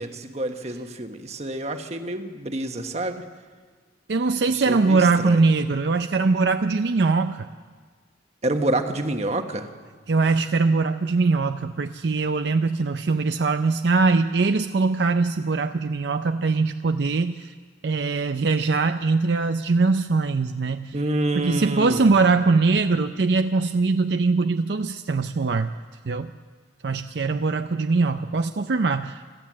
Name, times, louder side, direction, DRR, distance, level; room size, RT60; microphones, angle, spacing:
voice 1, 0.0-3.2 4.5-5.4 8.4-9.7 20.9-22.1, right 1 dB, 35° right, 6 dB, 1.3 m, -28 dB
voice 2, 4.1-7.5 10.1-17.5 17.8-21.0 21.4-25.7 26.0-26.3 26.8-29.3, right 3 dB, 65° right, 8 dB, 0.5 m, -22 dB
25.5 x 14.0 x 7.5 m, 1.5 s
head